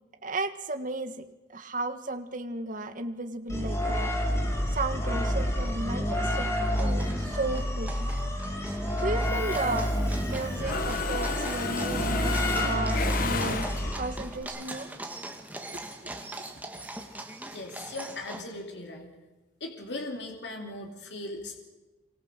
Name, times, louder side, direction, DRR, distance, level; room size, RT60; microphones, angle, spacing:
voice 1, 0.2-1.2 1.5-4.1 4.7-6.5 6.8-8.1 8.7-13.7 14.0-14.9 15.7-16.1, right 2 dB, 45° right, 8 dB, 1.6 m, -34 dB
sound 1, 3.5-14.4, equal, 15° left, 3.4 m, -29 dB
sound 2, 6.6-18.4, right 1 dB, 10° right, 1.9 m, -42 dB
Mechanisms, 9.4-10.3 10.6-14.2, left 3 dB, 50° left, 1.7 m, -32 dB
voice 2, 17.5-19.1 19.6-21.6, left 2 dB, 65° left, 3 dB, 3.0 m, -38 dB
25.5 x 24.5 x 6.7 m, 1.2 s
head